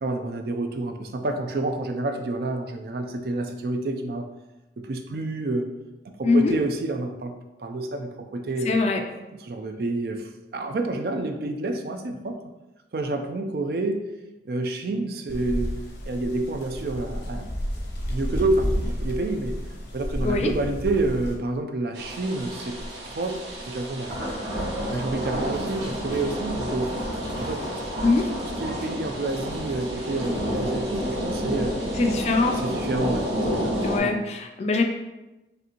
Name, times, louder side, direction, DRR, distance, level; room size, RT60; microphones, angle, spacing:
voice 1, 0.0-4.3 4.8-5.7 6.0-7.3 7.6-8.8 9.3-12.4 12.9-14.1 14.5-15.7 16.0-17.5 18.1-19.6 19.9-22.8 23.1-24.2 24.9-27.0 27.4-27.7 28.4-31.8 32.6-33.3 33.6-34.2, right 2 dB, 60° right, 6 dB, 0.4 m, -29 dB
voice 2, 8.7-9.0 20.2-20.5 28.0-28.3 32.0-32.6 33.8-34.8, left 3 dB, 40° left, 4 dB, 0.3 m, -22 dB
sound 1, 15.3-21.4, equal, 75° left, 0.9 m, -31 dB
sound 2, 21.9-34.0, equal, 90° right, 1.2 m, -30 dB
5.0 x 2.6 x 2.9 m, 1.0 s
head